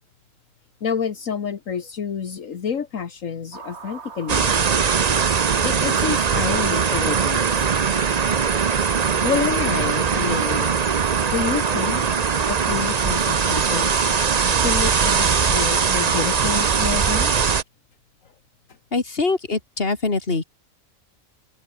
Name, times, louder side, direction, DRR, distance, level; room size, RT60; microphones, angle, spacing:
voice 1, 0.8-4.5 5.6-7.5 9.2-10.8 11.3-12.2 12.5-14.0 14.6-17.6 18.7-18.8, left 7 dB, 70° left, 1.8 m, -28 dB
sound 1, 3.5-17.6, right 5 dB, 55° right, 1.8 m, -33 dB
sound 2, 4.3-17.6, right 6 dB, 35° right, 0.7 m, -21 dB
voice 2, 18.9-20.4, left 3 dB, 45° left, 2.9 m, -23 dB
omnidirectional pair, 1.4 m